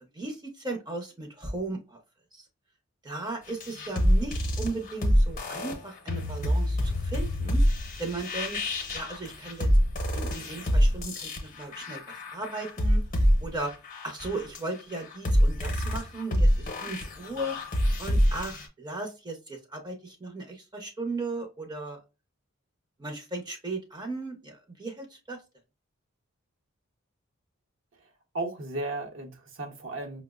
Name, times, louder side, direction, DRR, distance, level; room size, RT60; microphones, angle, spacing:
voice 1, 0.1-2.0 2.3-2.4 3.0-7.6 8.0-8.6 8.9-9.7 10.1-13.0 13.4-13.7 14.0-17.6 18.0-22.0 23.0-25.4, right 2 dB, 20° right, 0.6 m, -36 dB
sound 1, 3.5-18.7, equal, 40° left, 0.7 m, -26 dB
voice 2, 28.3-30.2, right 2 dB, 65° right, 0.8 m, -35 dB
5.4 x 2.0 x 2.2 m
head